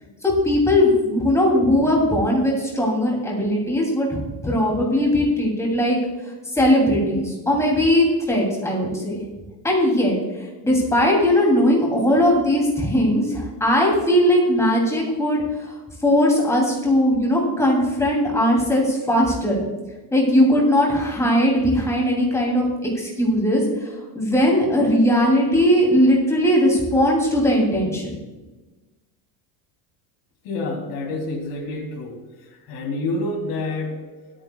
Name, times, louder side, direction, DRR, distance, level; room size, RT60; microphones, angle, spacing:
voice 1, 0.2-4.2 4.4-6.0 6.5-9.2 9.6-10.2 10.6-15.7 16.0-19.6 20.1-23.6 24.1-28.2, left 1 dB, 5° left, -2 dB, 2.9 m, -19 dB
voice 2, 30.4-32.2 32.7-34.4, left 2 dB, 50° left, 1 dB, 3.1 m, -28 dB
23.5 x 9.2 x 2.3 m, 1.2 s
cardioid pair, 170°, 48 cm